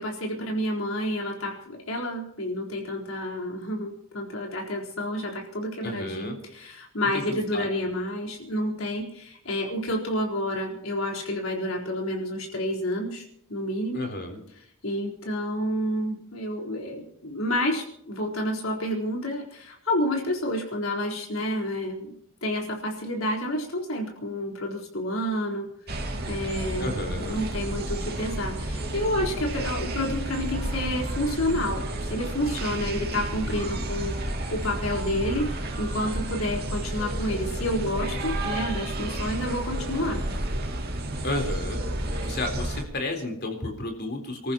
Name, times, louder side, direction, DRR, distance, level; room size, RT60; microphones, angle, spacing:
voice 1, 0.0-13.2 13.5-14.0 14.8-22.1 22.4-25.7 26.3-31.8 32.1-40.3, left 1 dB, 75° left, 0 dB, 4.1 m, -29 dB
voice 2, 5.8-6.4 7.1-7.7 13.9-14.4 26.8-27.4 32.8-33.9 41.2-41.8 42.2-44.5, left 1 dB, 50° left, 4 dB, 3.8 m, -32 dB
sound 1, 25.9-42.8, right 1 dB, 50° right, 2.5 m, -31 dB
29.0 x 14.0 x 3.0 m, 0.74 s
head